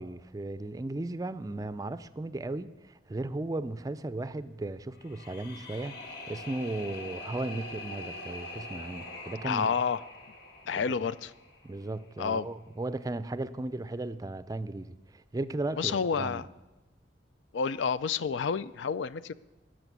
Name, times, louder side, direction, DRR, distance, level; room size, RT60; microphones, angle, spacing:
voice 1, 0.0-9.7 10.9-11.0 11.6-16.4, right 2 dB, 20° right, 0.4 m, -36 dB
sound 1, 5.0-12.0, left 2 dB, 60° left, 1.7 m, -44 dB
voice 2, 9.4-10.0 10.7-11.3 12.2-12.5 15.8-16.5 17.5-19.3, left 6 dB, 85° left, 0.4 m, -29 dB
14.0 x 6.4 x 9.2 m
head